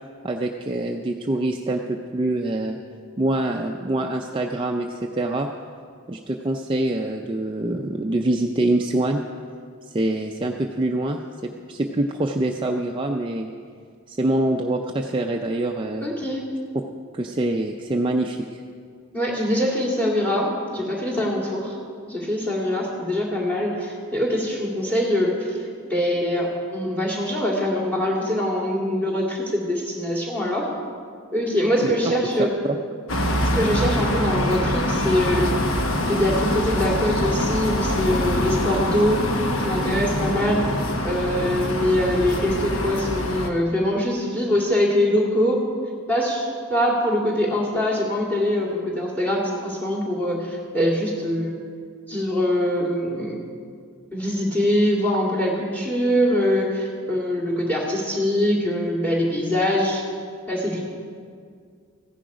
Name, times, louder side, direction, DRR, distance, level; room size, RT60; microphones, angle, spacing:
voice 1, 0.2-2.8 3.2-5.5 6.1-9.2 9.9-13.5 14.1-16.0 17.1-18.6 31.8-31.9 32.6-32.8, right 1 dB, 25° right, 2 dB, 0.4 m, -25 dB
voice 2, 16.0-16.5 19.1-21.8 22.1-25.6 25.8-30.7 31.3-32.5 33.5-35.6 36.1-39.2 39.6-45.7 46.1-51.6 52.1-53.4 54.1-60.0 60.5-60.9, left 1 dB, 5° left, -2 dB, 2.2 m, -23 dB
sound 1, 33.1-43.5, left 1 dB, 70° left, 1.1 m, -24 dB
15.0 x 10.0 x 4.9 m, 2.2 s
head